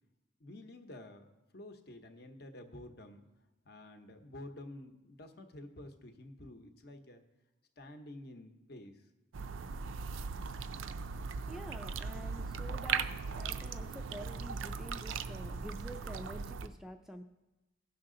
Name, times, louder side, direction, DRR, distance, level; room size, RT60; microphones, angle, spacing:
voice 1, 0.4-1.2 1.5-3.3 3.6-7.2 7.8-9.0, left 1 dB, 55° left, 6 dB, 0.9 m, -50 dB
sound 1, 9.3-16.7, right 5 dB, 85° right, 0.4 m, -38 dB
voice 2, 11.5-13.1 13.4-17.2, equal, ahead, 5 dB, 0.3 m, -48 dB
16.0 x 5.9 x 3.8 m, 1.0 s
head